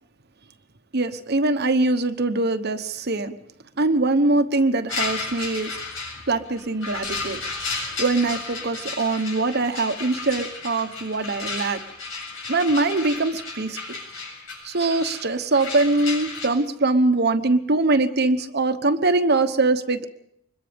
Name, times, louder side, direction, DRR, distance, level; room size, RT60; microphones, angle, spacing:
voice 1, 0.9-3.4 3.8-5.8 6.3-7.4 8.0-11.8 12.5-14.0 14.6-20.1, right 2 dB, 55° right, 9 dB, 1.2 m, -22 dB
sound 1, 4.9-16.5, left 4 dB, 75° left, 7.7 m, -33 dB
25.0 x 21.5 x 5.3 m, 0.73 s
head